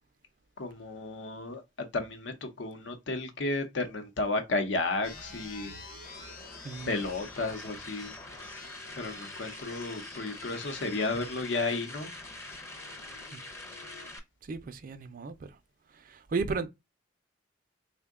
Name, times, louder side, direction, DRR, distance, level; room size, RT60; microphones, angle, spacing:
voice 1, 0.6-5.7 6.9-8.1 9.0-12.1, left 3 dB, 80° left, 0.7 m, -33 dB
sound 1, 5.0-14.1, left 3 dB, 50° left, 0.9 m, -49 dB
sound 2, 6.0-14.2, left 2 dB, 15° left, 0.5 m, -45 dB
voice 2, 6.6-7.0 13.3-13.4 14.4-15.5 15.9-16.7, right 4 dB, 50° right, 0.4 m, -34 dB
3.6 x 2.2 x 3.5 m
head